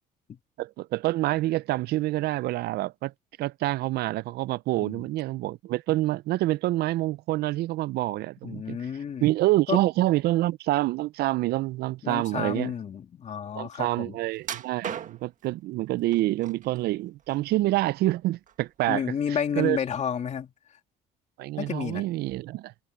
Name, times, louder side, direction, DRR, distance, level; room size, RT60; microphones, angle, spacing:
voice 1, 0.6-3.1 3.4-8.8 9.2-12.7 13.6-19.0 19.6-19.8 21.4-22.7, right 17 dB, 70° right, 0.4 m, -27 dB
voice 2, 8.4-9.3 9.7-9.8 12.0-14.2 18.9-20.5 21.6-22.0, left 7 dB, 45° left, 2.4 m, -31 dB
sound 1, 14.4-15.5 16.1-16.8 17.2-18.1 18.5-18.7 19.2-19.3, right 9 dB, 50° right, 1.6 m, -37 dB
cardioid pair, 110°, 17 cm